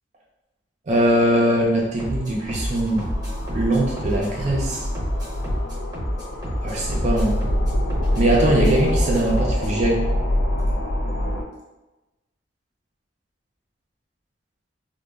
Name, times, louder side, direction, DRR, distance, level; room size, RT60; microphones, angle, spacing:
voice 1, 0.9-3.0 3.5-4.9 6.6-7.4 8.2-10.0, right 1 dB, 40° right, -2 dB, 0.4 m, -21 dB
sound 1, 1.0-11.4, left 1 dB, 85° left, 0.4 m, -25 dB
sound 2, 2.0-9.8, equal, 20° right, 0.8 m, -32 dB
2.1 x 2.0 x 3.4 m, 1.1 s
head